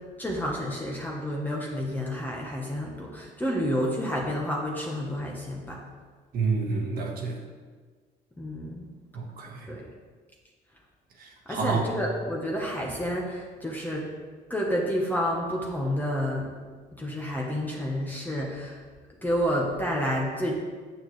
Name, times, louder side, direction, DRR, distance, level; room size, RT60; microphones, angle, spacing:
voice 1, 0.2-5.8 8.4-8.8 9.7-9.8 11.5-14.1 14.5-16.5 17.0-18.8 19.2-20.5, equal, 10° left, -2 dB, 1.1 m, -29 dB
voice 2, 6.3-7.4 9.1-9.7 11.2-11.8, right 4 dB, 60° right, 0 dB, 1.4 m, -29 dB
8.8 x 7.2 x 3.2 m, 1.5 s
cardioid pair, 110°, 17 cm